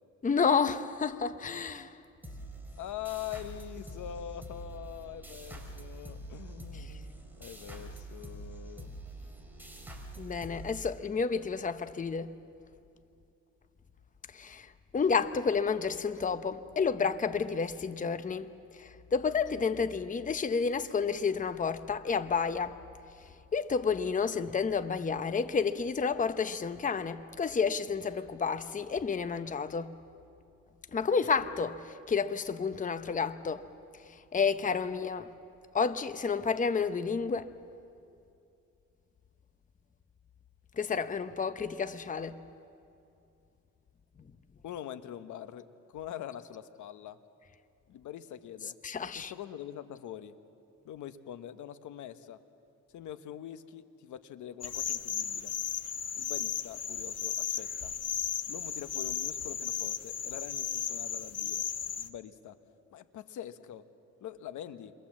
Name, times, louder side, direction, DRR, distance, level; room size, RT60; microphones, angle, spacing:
voice 1, 0.2-1.9 10.2-12.3 14.3-18.5 18.8-22.8 23.5-29.9 30.9-33.7 34.3-35.3 35.7-37.5 40.8-42.4 48.8-49.3, left 5 dB, 25° left, 0.9 m, -30 dB
sound 1, 2.2-11.5, right 1 dB, 5° right, 4.4 m, -45 dB
voice 2, 2.8-8.9 44.6-45.7 45.9-47.2 47.9-48.8 49.1-50.4 50.8-52.4 52.9-55.5 56.2-57.9 58.5-61.6 62.0-62.6 62.9-63.8 64.2-64.9, left 11 dB, 75° left, 1.2 m, -44 dB
sound 2, 54.6-62.1, left 8 dB, 55° left, 1.2 m, -35 dB
29.5 x 23.0 x 7.4 m
cardioid pair, 90°, 30 cm